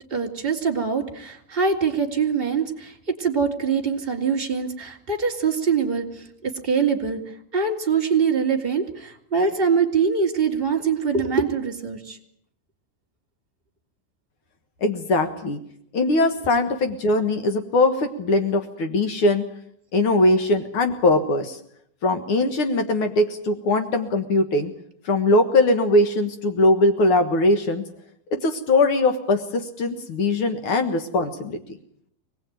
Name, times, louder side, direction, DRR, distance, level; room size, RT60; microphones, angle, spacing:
voice 1, 0.1-7.2 7.5-12.2, right 5 dB, 15° right, 1 dB, 3.1 m, -23 dB
voice 2, 14.8-15.6 15.9-19.4 19.9-21.6 22.0-24.7 25.0-27.8 28.3-31.6, left 2 dB, 60° left, 7 dB, 1.4 m, -21 dB
25.5 x 19.5 x 9.2 m, 0.74 s
omnidirectional pair, 4.4 m